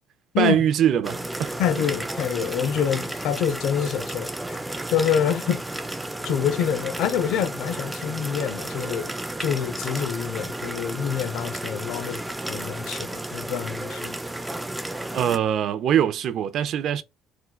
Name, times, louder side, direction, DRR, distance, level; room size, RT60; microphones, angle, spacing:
voice 1, 0.4-1.6 15.1-17.0, right 10 dB, 60° right, 0.5 m, -22 dB
sound 1, 1.0-15.4, right 1 dB, 10° right, 0.4 m, -33 dB
voice 2, 1.6-4.6 4.9-5.7 6.2-14.2, left 8 dB, 75° left, 0.5 m, -26 dB
4.4 x 2.2 x 2.3 m
supercardioid pair, 90°, 0 cm